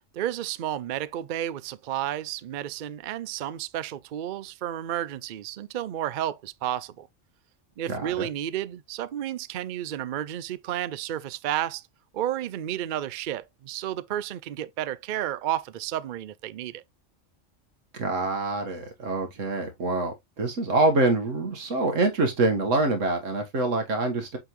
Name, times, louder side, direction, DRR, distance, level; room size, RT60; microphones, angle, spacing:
voice 1, 0.1-7.1 7.8-11.8 12.1-16.8, right 12 dB, 60° right, 0.5 m, -32 dB
voice 2, 7.9-8.3 17.9-24.4, right 2 dB, 80° right, 1.9 m, -25 dB
8.8 x 3.8 x 3.1 m
omnidirectional pair, 1.3 m